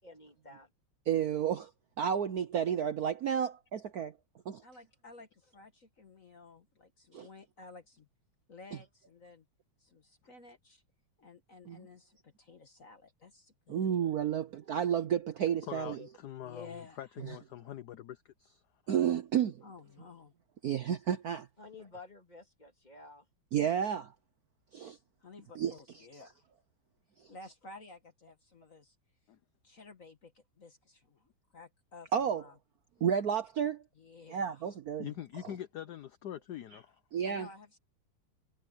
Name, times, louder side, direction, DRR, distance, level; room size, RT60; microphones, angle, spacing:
voice 1, 0.0-0.7 21.6-23.3, left 3 dB, 20° left, 3.1 m, -51 dB
voice 2, 1.1-1.7 2.0-4.1 4.5-4.6 7.1-7.3 11.7-11.9 13.7-16.0 18.9-19.6 20.6-21.5 23.5-24.1 24.7-25.0 25.6-25.7 32.1-32.4 33.0-33.8 34.3-35.1 37.1-37.5, right 8 dB, 60° right, 1.0 m, -31 dB
voice 3, 4.6-8.1 8.5-9.4 9.8-10.8 11.2-14.2 14.7-14.8 16.4-17.0 19.6-20.3 25.2-26.4 27.3-28.9 29.6-32.5 34.0-34.6 37.2-37.8, left 3 dB, 40° left, 1.6 m, -53 dB
voice 4, 15.7-18.6 29.3-29.4 35.0-37.0, left 11 dB, 65° left, 1.1 m, -44 dB
omnidirectional pair, 2.3 m